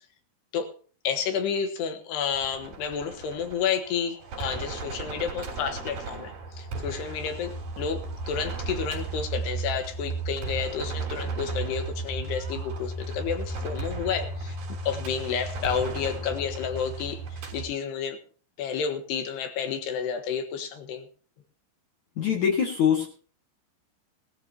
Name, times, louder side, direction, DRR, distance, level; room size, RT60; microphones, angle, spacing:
voice 1, 1.0-14.6 14.9-18.2 18.6-21.1, left 7 dB, 70° left, 7 dB, 3.2 m, -31 dB
sound 1, 2.3-17.7, right 3 dB, 55° right, 4.9 m, -35 dB
voice 2, 22.2-23.1, left 8 dB, 55° left, 0 dB, 2.5 m, -23 dB
19.0 x 13.5 x 2.9 m, 0.40 s
omnidirectional pair, 5.2 m